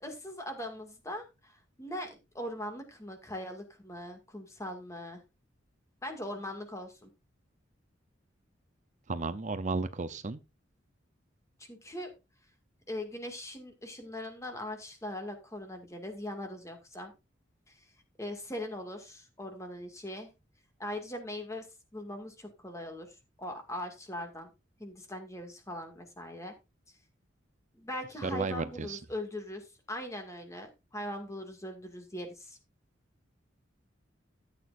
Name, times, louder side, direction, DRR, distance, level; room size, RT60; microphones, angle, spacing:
voice 1, 0.0-5.2 6.0-7.1 11.7-12.1 12.9-17.1 17.7-17.9 18.2-20.3 20.8-21.7 21.9-24.5 24.8-26.5 27.7-32.6, left 1 dB, 15° left, 2.1 m, -40 dB
voice 2, 9.1-10.4 28.2-29.0, right 3 dB, 40° right, 0.6 m, -33 dB
13.5 x 8.2 x 2.6 m
head